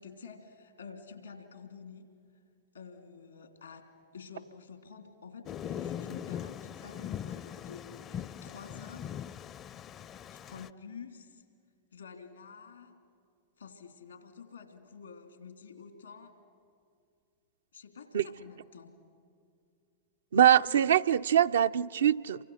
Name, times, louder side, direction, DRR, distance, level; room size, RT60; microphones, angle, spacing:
voice 1, 0.0-2.1 2.7-9.1 10.3-11.4 11.9-13.0 13.6-16.3 17.7-18.9, left 5 dB, 85° left, 3.0 m, -49 dB
Thunder, 5.5-10.7, left 9 dB, 35° left, 0.5 m, -40 dB
voice 2, 20.3-22.4, right 10 dB, 75° right, 0.5 m, -23 dB
29.0 x 24.5 x 6.4 m
hypercardioid pair, 95°, 0 cm